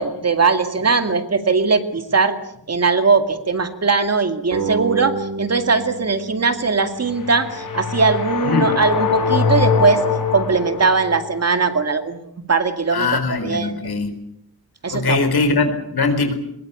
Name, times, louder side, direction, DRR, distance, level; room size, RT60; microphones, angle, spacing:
voice 1, 0.0-2.4 2.7-10.0 10.3-12.2 12.5-13.1 13.4-13.7 14.8-15.3, right 4 dB, 45° right, 8 dB, 2.2 m, -19 dB
sound 1, 4.5-7.7, right 4 dB, 70° right, 4.1 m, -30 dB
sound 2, 7.0-11.3, left 6 dB, 60° left, 3.8 m, -22 dB
voice 2, 12.9-14.1 14.9-16.3, left 3 dB, 85° left, 8 dB, 4.5 m, -21 dB
22.5 x 22.0 x 8.4 m, 0.74 s
wide cardioid pair, 165°, 37 cm